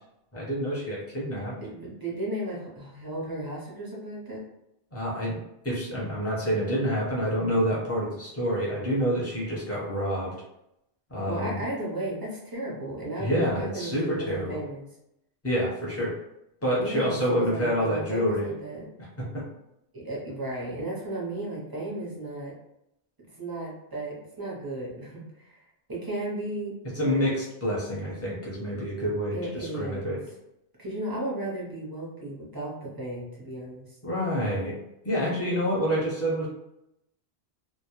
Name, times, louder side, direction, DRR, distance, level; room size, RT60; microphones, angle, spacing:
voice 1, 0.3-1.5 4.9-5.4 5.6-10.3 11.1-11.6 13.2-14.6 15.4-16.1 16.6-18.5 19.3-19.4 26.9-30.2 34.0-34.8 35.0-36.5, equal, 15° left, -6 dB, 0.6 m, -27 dB
voice 2, 1.6-4.4 11.3-14.9 16.8-18.9 19.9-22.5 23.4-25.6 25.9-27.3 29.3-30.2 30.8-34.0, right 1 dB, 25° right, -4 dB, 0.5 m, -34 dB
2.2 x 2.0 x 2.9 m, 0.84 s
omnidirectional pair, 1.1 m